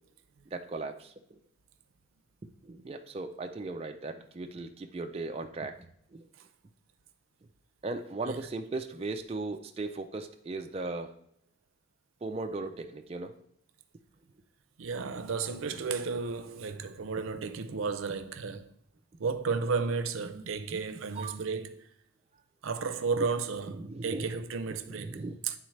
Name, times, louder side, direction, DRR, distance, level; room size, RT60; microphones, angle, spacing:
voice 1, 0.5-1.4 2.6-6.3 7.8-11.1 12.2-13.3 20.3-21.4 23.2-23.3 23.7-24.4 24.9-25.4, right 3 dB, 30° right, 0.3 m, -38 dB
voice 2, 14.8-18.7 19.2-21.8 22.6-25.5, right 5 dB, 85° right, 0.5 m, -33 dB
9.8 x 3.9 x 3.2 m
head